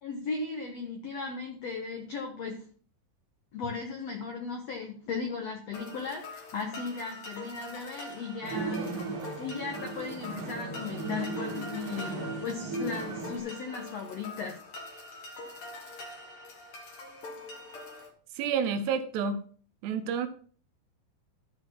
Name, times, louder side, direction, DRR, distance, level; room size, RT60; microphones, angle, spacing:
voice 1, 0.0-2.6 3.5-9.0 9.4-14.6, left 4 dB, 75° left, 3 dB, 1.5 m, -37 dB
sound 1, 5.7-18.1, left 2 dB, 55° left, 1.5 m, -44 dB
sound 2, 8.4-13.4, right 3 dB, 55° right, 2.9 m, -36 dB
voice 2, 18.4-19.5 19.8-20.3, right 6 dB, 75° right, 8 dB, 2.9 m, -29 dB
13.0 x 4.8 x 5.8 m, 0.44 s
omnidirectional pair, 5.1 m